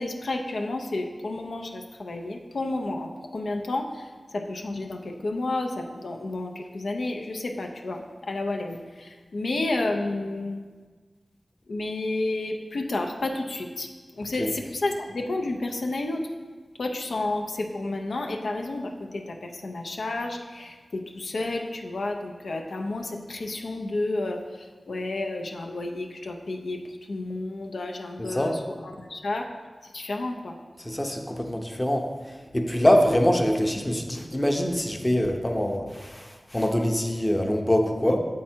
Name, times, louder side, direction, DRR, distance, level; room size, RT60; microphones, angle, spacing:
voice 1, 0.0-10.6 11.7-13.9 14.2-16.3 16.8-26.8 27.1-29.5 29.8-30.5, left 2 dB, 85° left, 3 dB, 0.5 m, -31 dB
voice 2, 28.2-28.5 30.8-32.1 32.5-38.2, left 1 dB, 15° left, 3 dB, 0.7 m, -24 dB
7.4 x 4.6 x 4.4 m, 1.5 s
wide cardioid pair, 70°, 0 cm